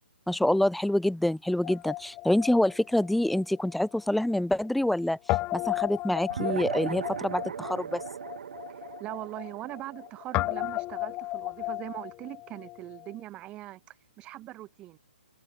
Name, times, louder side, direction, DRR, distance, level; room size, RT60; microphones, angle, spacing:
voice 1, 0.3-5.2 5.5-8.0, left 1 dB, ahead, 1.7 m, -26 dB
Guitar, 1.6-4.0 4.3-4.4 5.3-13.1, left 19 dB, 20° left, 3.2 m, -35 dB
sound 1, 6.3-11.1, right 7 dB, 60° right, 7.4 m, -37 dB
voice 2, 8.7-15.0, right 16 dB, 20° right, 3.7 m, -41 dB
hypercardioid pair, 155°, 6 cm